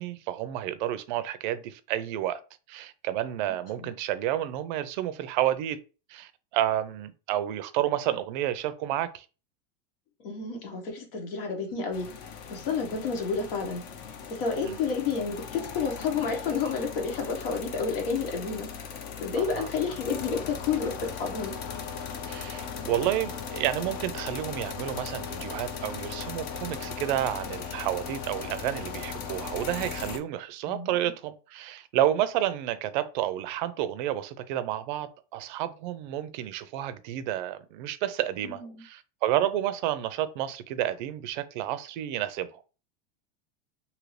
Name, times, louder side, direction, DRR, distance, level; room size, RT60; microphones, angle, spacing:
voice 1, 0.0-2.4 2.7-5.8 6.1-9.3 14.6-14.8 19.4-19.7 22.3-42.6, right 12 dB, 55° right, 0.4 m, -30 dB
voice 2, 10.2-12.1 12.5-13.8 14.3-18.7 19.2-21.5 30.7-31.1 38.4-38.8, left 5 dB, 75° left, 1.2 m, -30 dB
sound 1, 11.9-30.2, left 6 dB, 30° left, 0.4 m, -38 dB
2.7 x 2.6 x 3.1 m
supercardioid pair, 155°, 29 cm